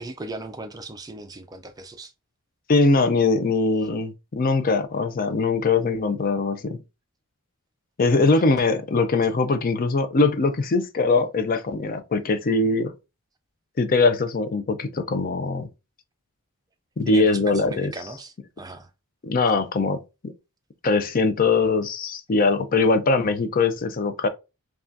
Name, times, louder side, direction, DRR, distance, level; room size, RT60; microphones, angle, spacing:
voice 1, 0.0-2.1 17.1-18.9, right 2 dB, 15° right, 0.4 m, -37 dB
voice 2, 2.7-6.8 8.0-12.9 13.8-15.7 17.0-17.9 19.2-20.0 20.2-20.3 20.8-24.3, left 3 dB, 40° left, 0.5 m, -21 dB
5.6 x 2.4 x 2.5 m
head